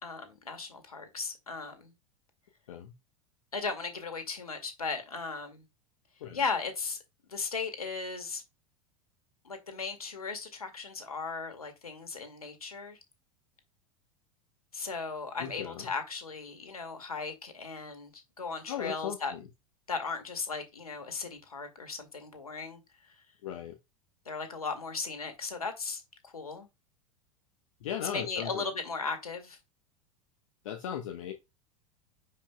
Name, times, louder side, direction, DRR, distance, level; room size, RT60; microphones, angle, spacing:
voice 1, 0.0-1.9 3.5-5.6 6.3-7.0 7.3-8.4 9.4-13.0 14.7-19.3 19.9-22.8 24.3-26.7 28.0-29.6, left 4 dB, 80° left, 2.1 m, -37 dB
voice 2, 15.4-15.9 18.7-19.4 23.4-23.8 27.8-28.6 30.6-31.3, left 9 dB, 60° left, 1.1 m, -37 dB
9.9 x 5.4 x 2.2 m
figure-of-eight pair, 85°, 19 cm